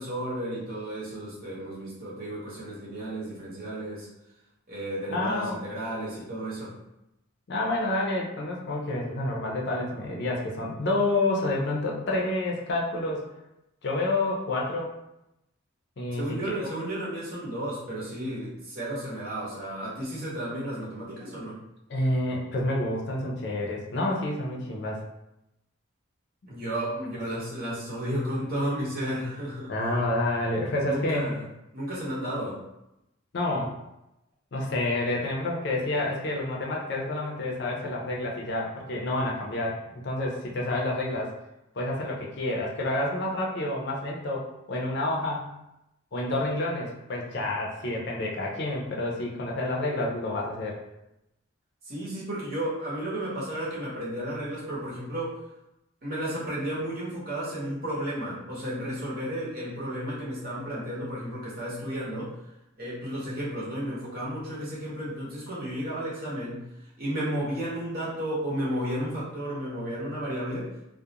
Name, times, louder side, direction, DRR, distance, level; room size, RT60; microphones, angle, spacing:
voice 1, 0.0-4.1 4.7-6.7 16.1-21.6 26.5-29.7 30.8-31.4 31.7-32.6 51.8-55.4 56.0-62.3 62.8-66.7 67.0-70.7, right 1 dB, 45° right, -7 dB, 0.9 m, -33 dB
voice 2, 5.1-5.6 7.5-13.3 13.8-14.9 16.0-16.2 21.9-25.0 29.7-31.3 33.3-33.7 34.5-41.3 41.8-45.5 46.1-50.8, left 2 dB, 55° left, -1 dB, 0.4 m, -29 dB
2.3 x 2.0 x 2.8 m, 0.89 s
head